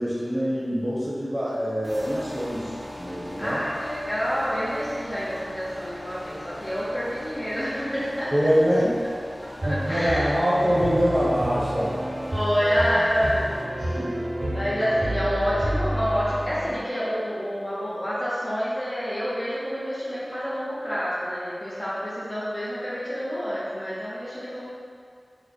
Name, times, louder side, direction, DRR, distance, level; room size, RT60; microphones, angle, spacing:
voice 1, 0.0-3.6 8.3-9.1 9.6-12.0 13.9-14.1, equal, 30° right, -6 dB, 0.8 m, -24 dB
sound 1, 1.8-13.6, left 1 dB, 5° left, 1.0 m, -41 dB
voice 2, 3.4-8.3 9.4-10.3 12.3-14.0 14.5-24.7, equal, 30° left, -10 dB, 0.7 m, -28 dB
sound 2, 9.6-16.8, right 1 dB, 65° right, 0.5 m, -30 dB
3.3 x 2.1 x 3.9 m, 2.3 s
wide cardioid pair, 45°, 0 cm